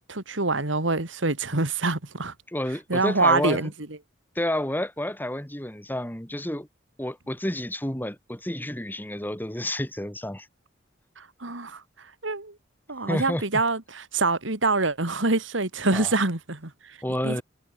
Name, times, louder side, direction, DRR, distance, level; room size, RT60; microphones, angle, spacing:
voice 1, 0.1-2.3 2.9-3.7 11.2-12.6 12.9-17.0 17.2-17.4, right 3 dB, 75° right, 2.8 m, -25 dB
voice 2, 2.5-3.6 4.3-6.7 7.0-10.5 13.1-13.4 15.9-16.1 17.0-17.4, left 1 dB, 10° left, 3.0 m, -30 dB
head